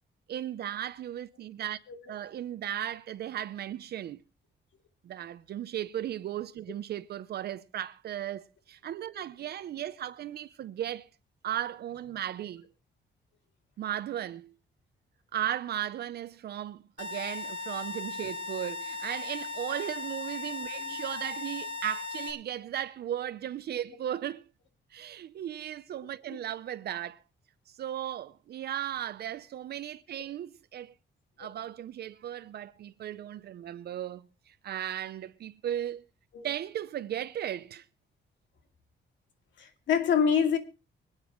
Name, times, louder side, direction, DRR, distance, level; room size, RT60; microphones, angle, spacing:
voice 1, 0.3-1.8 2.1-4.2 5.0-11.1 11.4-12.7 13.8-14.5 15.3-24.5 24.9-27.2 27.7-30.9 31.4-36.0 36.4-37.9, right 11 dB, 60° right, 0.6 m, -36 dB
sound 1, 17.0-22.3, left 4 dB, 40° left, 2.6 m, -37 dB
voice 2, 39.6-40.6, left 7 dB, 80° left, 2.3 m, -25 dB
25.5 x 9.0 x 3.0 m
cardioid pair, 160°, 19 cm